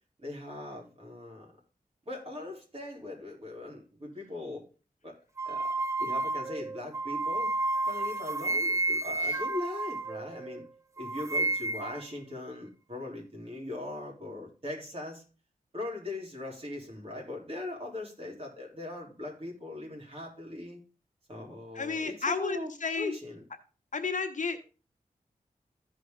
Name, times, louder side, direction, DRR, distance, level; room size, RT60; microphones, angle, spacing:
voice 1, 0.2-1.5 2.1-4.7 5.0-5.1 5.5-5.7 6.0-7.5 7.9-10.6 11.0-15.2 15.7-20.8 21.3-23.4, left 2 dB, 40° right, -1 dB, 3.9 m, -40 dB
sound 1, 5.4-10.6 11.0-12.0, right 2 dB, 20° right, 0.4 m, -31 dB
voice 2, 21.7-23.1 23.9-24.6, left 4 dB, 55° left, 7 dB, 1.1 m, -32 dB
14.5 x 5.0 x 3.9 m, 0.35 s
wide cardioid pair, 75°, 15 cm